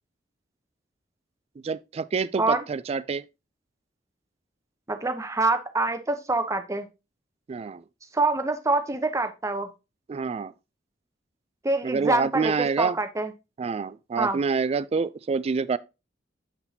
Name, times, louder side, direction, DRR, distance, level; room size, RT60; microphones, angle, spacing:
voice 1, 1.6-3.2 7.5-7.8 10.1-10.5 11.8-13.0 13.6-15.8, right 5 dB, 35° right, 0.3 m, -27 dB
voice 2, 4.9-6.9 8.1-9.7 11.6-13.3 14.2-14.4, right 2 dB, 15° right, 0.7 m, -25 dB
7.2 x 6.0 x 2.7 m
head